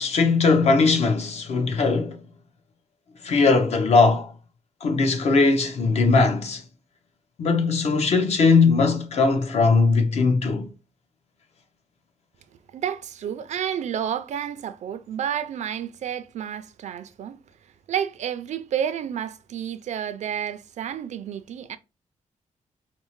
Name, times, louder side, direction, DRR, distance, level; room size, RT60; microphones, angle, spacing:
voice 1, 0.0-2.2 3.2-4.3 4.8-6.6 7.4-10.7, left 4 dB, 55° left, 0.7 m, -20 dB
voice 2, 12.7-17.4 17.9-21.8, right 9 dB, 65° right, 0.4 m, -30 dB
4.3 x 2.1 x 3.0 m
wide cardioid pair, 165°, 13 cm